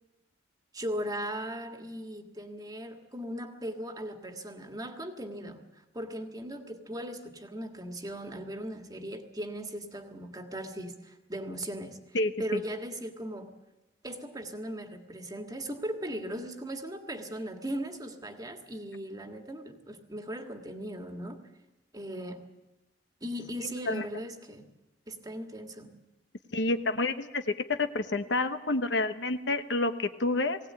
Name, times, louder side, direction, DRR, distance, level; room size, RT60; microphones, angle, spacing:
voice 1, 0.7-5.6 5.9-12.0 12.4-13.5 14.0-21.4 21.9-22.4 23.2-24.7 25.1-26.0 26.5-26.6, equal, 20° right, 5 dB, 1.7 m, -38 dB
voice 2, 12.1-12.6 23.9-24.0 26.5-27.4 27.7-30.6, left 2 dB, 65° left, 9 dB, 1.1 m, -29 dB
20.0 x 17.5 x 8.7 m, 1.0 s
head